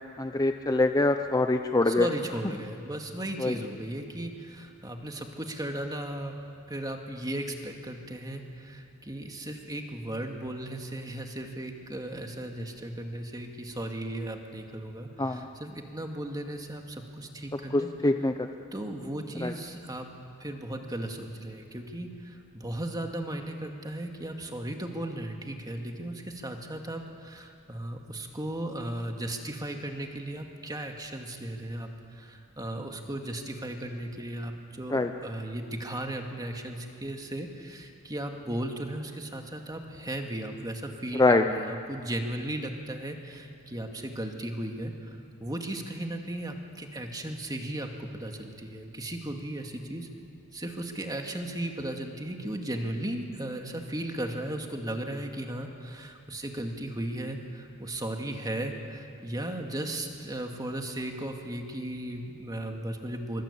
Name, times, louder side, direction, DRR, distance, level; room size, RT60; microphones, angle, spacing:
voice 1, 0.2-2.1 3.4-3.6 15.2-15.5 17.7-18.5 19.4-19.5 34.9-35.1 41.1-41.4, left 2 dB, 15° left, 7 dB, 0.7 m, -24 dB
voice 2, 1.9-6.4 6.7-17.9 18.7-20.1 20.4-50.1 50.5-63.4, right 1 dB, 15° right, 3 dB, 2.2 m, -36 dB
24.5 x 24.0 x 8.6 m, 2.5 s
head